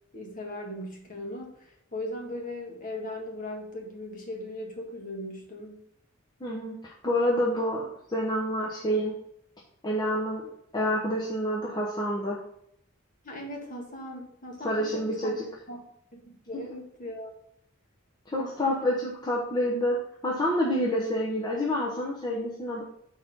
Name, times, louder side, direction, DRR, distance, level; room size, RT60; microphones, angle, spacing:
voice 1, 0.1-5.8 13.2-15.3 15.7-15.8 16.1-17.4 18.4-18.9, left 1 dB, 40° left, 1 dB, 1.5 m, -38 dB
voice 2, 6.4-9.1 9.8-12.4 14.6-15.4 18.3-20.0 20.2-22.8, equal, 20° left, -4 dB, 1.0 m, -28 dB
6.6 x 4.3 x 5.3 m, 0.73 s
head